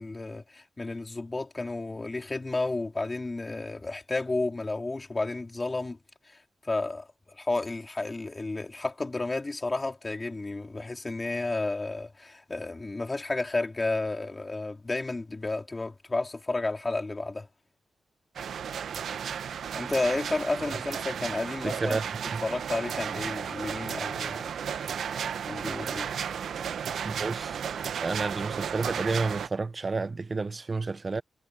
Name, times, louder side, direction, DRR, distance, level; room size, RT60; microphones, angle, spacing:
voice 1, 0.0-6.0 6.3-6.4 6.6-17.5 19.8-22.0 22.4-24.5 25.5-26.1, left 2 dB, 25° left, 3.2 m, -32 dB
sound 1, 18.4-29.5, right 8 dB, 80° right, 0.9 m, -34 dB
voice 2, 21.6-22.0 22.3-22.4 27.0-27.6 28.0-31.2, right 3 dB, 35° right, 0.7 m, -30 dB
cardioid pair, 90°, 0 cm